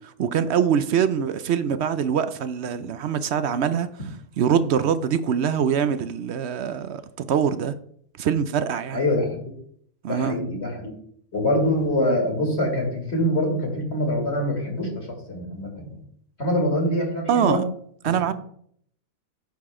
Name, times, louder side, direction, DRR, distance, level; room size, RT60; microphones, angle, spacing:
voice 1, 0.2-3.9 4.4-7.8 8.2-9.0 10.0-10.4 17.3-17.6 18.0-18.3, right 8 dB, 60° right, 0.7 m, -23 dB
voice 2, 8.9-9.4 10.1-10.9 11.3-16.0 16.4-17.6 18.3-18.4, left 1 dB, 50° left, 2.6 m, -24 dB
9.3 x 6.7 x 3.7 m
omnidirectional pair, 1.5 m